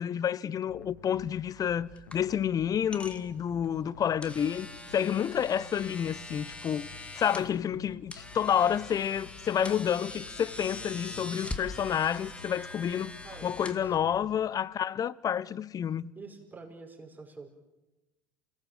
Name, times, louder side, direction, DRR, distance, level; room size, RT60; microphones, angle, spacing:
voice 1, 0.0-4.7 4.9-6.9 7.1-13.1 13.4-16.0, left 9 dB, 35° left, 0.8 m, -29 dB
sound 1, 0.7-14.2, left 5 dB, 85° left, 1.8 m, -51 dB
sound 2, 1.2-14.4, left 2 dB, 10° left, 2.2 m, -44 dB
voice 2, 13.2-14.2 16.2-17.5, right 4 dB, 15° right, 5.4 m, -47 dB
28.0 x 18.0 x 7.6 m
hypercardioid pair, 75°, 11 cm